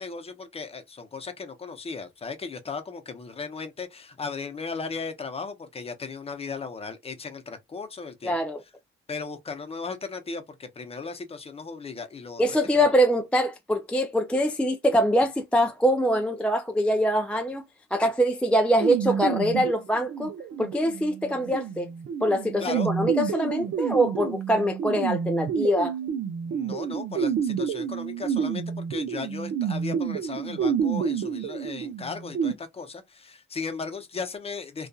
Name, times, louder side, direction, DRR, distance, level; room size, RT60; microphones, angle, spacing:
voice 1, 0.0-8.4 9.1-12.4 12.7-12.8 22.6-22.9 26.5-34.9, left 4 dB, 30° left, 0.7 m, -36 dB
voice 2, 8.2-8.6 12.4-17.6 17.9-20.3 20.6-21.9 22.2-25.9, equal, 5° left, 0.3 m, -24 dB
sound 1, 18.8-32.5, right 7 dB, 65° right, 0.6 m, -29 dB
2.6 x 2.3 x 2.3 m
cardioid pair, 90°, 20 cm